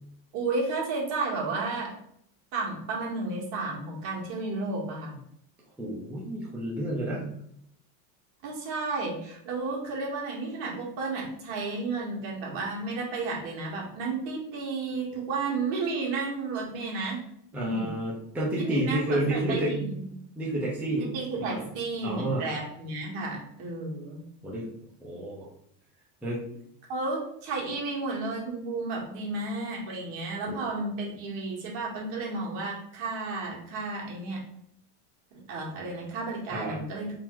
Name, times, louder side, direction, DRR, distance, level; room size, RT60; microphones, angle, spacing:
voice 1, 0.3-1.9 2.5-5.2 8.4-17.2 17.5-18.0 18.6-20.0 21.0-24.2 26.9-34.4 35.3-37.2, right 3 dB, 60° right, -2 dB, 1.8 m, -32 dB
voice 2, 5.8-7.3 17.5-19.8 20.4-21.6 22.0-22.4 24.4-24.7 25.0-25.5 26.2-26.4 30.5-30.6 36.5-36.8, right 1 dB, 5° right, -5 dB, 0.6 m, -30 dB
3.8 x 2.9 x 4.5 m, 0.71 s
cardioid pair, 160°, 45 cm